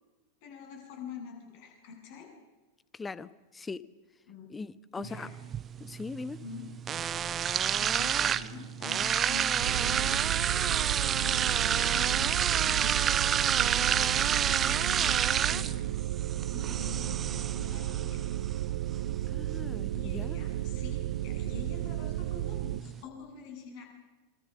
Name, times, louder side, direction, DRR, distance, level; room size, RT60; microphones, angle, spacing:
voice 1, 0.4-2.3 4.3-4.5 5.0-5.3 6.4-6.7 7.4-10.6 11.1-13.2 13.7-15.8 16.5-18.2 19.9-23.8, left 5 dB, 45° left, 2 dB, 7.8 m, -46 dB
voice 2, 2.9-3.8 4.5-5.3 5.8-6.4 19.3-20.4, left 4 dB, 15° left, 16 dB, 1.0 m, -40 dB
sound 1, 5.0-23.0, right 9 dB, 25° right, 0.8 m, -30 dB
sound 2, 9.6-22.8, right 14 dB, 55° right, 0.8 m, -33 dB
27.0 x 25.0 x 6.7 m, 1.2 s
figure-of-eight pair, 90°, 0 cm